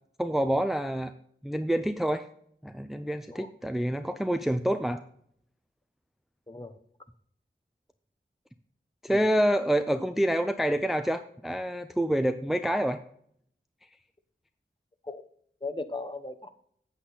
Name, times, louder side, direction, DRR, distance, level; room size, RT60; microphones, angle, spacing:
voice 1, 0.2-1.1 1.4-2.3 2.6-5.0 9.0-13.0, equal, ahead, 9 dB, 0.5 m, -27 dB
voice 2, 15.6-16.5, left 3 dB, 25° left, 9 dB, 0.9 m, -37 dB
8.3 x 8.1 x 4.0 m, 0.66 s
wide cardioid pair, 45°, 21 cm